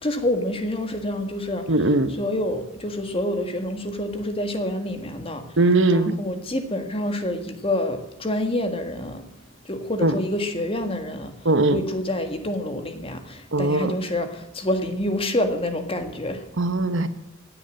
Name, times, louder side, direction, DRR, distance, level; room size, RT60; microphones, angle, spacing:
voice 1, 0.0-1.7 2.2-5.4 5.9-9.2 9.6-11.3 11.7-16.4, left 1 dB, 25° left, 7 dB, 1.7 m, -27 dB
voice 2, 1.7-2.1 5.6-6.2 10.0-10.1 11.4-11.8 13.5-13.9 16.6-17.1, right 2 dB, 60° right, 11 dB, 1.1 m, -20 dB
16.5 x 9.5 x 7.8 m, 0.82 s
head